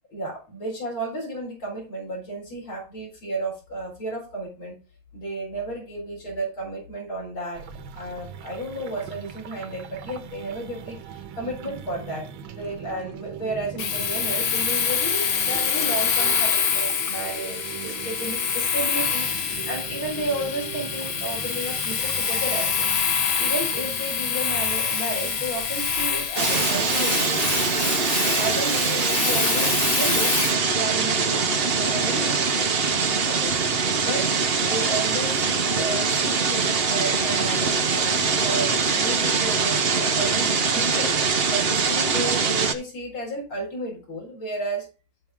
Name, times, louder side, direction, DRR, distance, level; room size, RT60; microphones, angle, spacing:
voice 1, 0.1-4.8 5.1-7.6 8.0-22.9 23.4-27.5 28.4-33.6 34.0-34.3 34.6-41.1 41.5-44.9, right 1 dB, 85° left, -3 dB, 5.0 m, -33 dB
sound 1, 7.6-26.3, right 8 dB, 75° right, 1.6 m, -40 dB
Domestic sounds home sounds, 13.8-30.6, left 7 dB, 60° left, 1.6 m, -26 dB
sound 2, 26.4-42.7, right 5 dB, 50° right, 0.7 m, -23 dB
13.5 x 4.5 x 3.6 m, 0.32 s
omnidirectional pair, 2.2 m